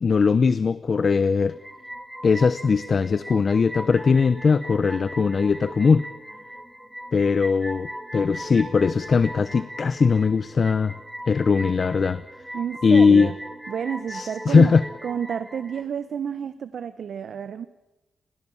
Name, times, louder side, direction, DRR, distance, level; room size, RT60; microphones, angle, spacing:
voice 1, 0.0-1.5 2.2-6.1 7.1-10.9 11.3-12.2 12.8-13.3 14.1-14.8, left 5 dB, 55° left, 14 dB, 0.9 m, -20 dB
sound 1, 1.5-15.8, equal, 5° right, 3.1 m, -39 dB
voice 2, 12.5-13.3 13.7-14.7 15.0-17.7, right 8 dB, 70° right, 13 dB, 1.1 m, -30 dB
29.0 x 21.5 x 7.3 m, 1.0 s
cardioid pair, 60°, 0 cm